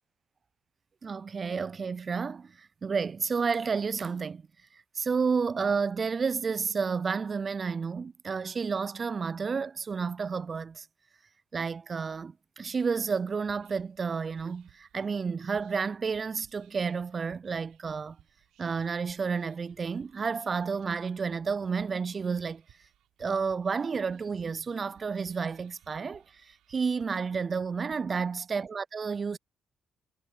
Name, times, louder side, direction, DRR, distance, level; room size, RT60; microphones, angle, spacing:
voice 1, 1.0-4.4 5.0-10.9 11.5-18.2 18.6-22.6 23.2-29.4, right 5 dB, 40° right, 0.3 m, -31 dB
Whispering, 13.3-27.9, right 13 dB, 90° right, 3.8 m, -64 dB
cardioid pair, 90°, 0 cm